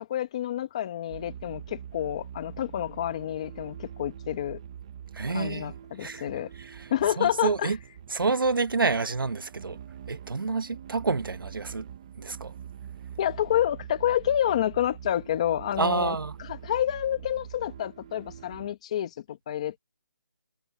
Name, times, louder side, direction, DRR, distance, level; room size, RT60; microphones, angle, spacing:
voice 1, 0.0-4.6 5.3-6.5 6.9-7.7 13.2-19.8, left 11 dB, 20° left, 1.8 m, -29 dB
sound 1, 1.1-18.7, right 9 dB, 15° right, 1.0 m, -44 dB
voice 2, 5.1-5.7 6.0-6.3 6.6-6.9 7.2-7.8 8.1-9.8 10.1-11.8 12.2-12.5 15.8-16.3, right 4 dB, 85° right, 1.5 m, -28 dB
hypercardioid pair, 175°, 11 cm